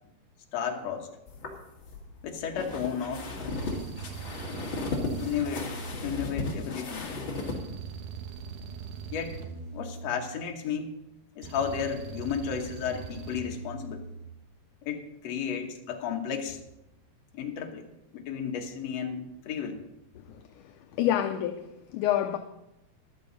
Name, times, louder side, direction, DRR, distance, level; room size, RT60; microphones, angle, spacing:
voice 1, 0.5-1.1 2.2-3.3 3.6-3.9 5.2-5.7 6.0-7.1 9.1-9.4 9.7-10.9 11.4-14.1 14.8-16.6 17.3-17.9 18.1-19.8, left 7 dB, 60° left, 2.2 m, -33 dB
sound 1, 1.3-7.6, left 3 dB, 40° left, 2.3 m, -35 dB
sound 2, 3.5-6.6 7.4-10.6 11.4-14.3, right 5 dB, 75° right, 2.7 m, -41 dB
voice 2, 21.0-21.7 21.9-22.4, left 11 dB, 80° left, 1.9 m, -26 dB
14.0 x 12.0 x 4.0 m
omnidirectional pair, 4.0 m